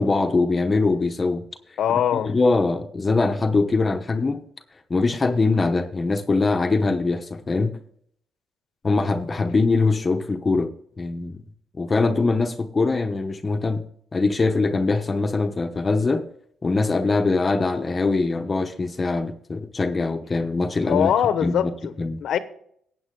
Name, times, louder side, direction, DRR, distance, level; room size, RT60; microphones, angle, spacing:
voice 1, 0.0-1.4 1.9-4.4 4.9-7.8 8.8-10.7 11.0-11.4 11.8-13.8 14.1-16.3 16.6-21.1 21.4-21.7 22.0-22.2, left 3 dB, 30° left, 1.0 m, -22 dB
voice 2, 1.8-2.4 20.9-22.4, left 9 dB, 70° left, 1.0 m, -22 dB
13.0 x 8.6 x 3.8 m
cardioid pair, 90°, 0 cm